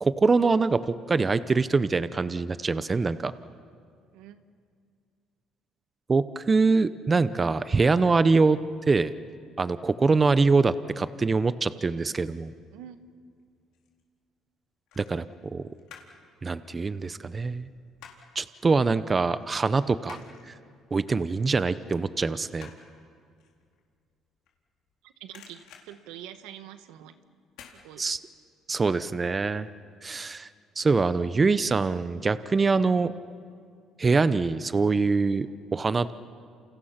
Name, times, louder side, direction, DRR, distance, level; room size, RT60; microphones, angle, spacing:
voice 1, 0.0-3.3 6.1-8.6 8.9-9.1 9.6-12.5 15.0-15.2 15.5-15.7 16.4-17.7 18.3-20.2 20.5-20.6 20.9-22.7 28.0-28.2 28.7-29.7 30.0-30.5 30.8-33.1 34.0-36.1, right 4 dB, 25° right, 14 dB, 0.8 m, -24 dB
sound 1, 13.4-14.0 14.9-16.2 16.5-18.4 18.8-18.9 19.3-24.9 25.2-26.9 27.5-27.8 28.2-28.3, left 8 dB, 80° left, 3.9 m, -52 dB
voice 2, 25.0-27.2 27.7-28.1, right 11 dB, 90° right, 10 dB, 1.3 m, -45 dB
29.0 x 28.5 x 5.9 m, 2.2 s
cardioid pair, 105°, 0 cm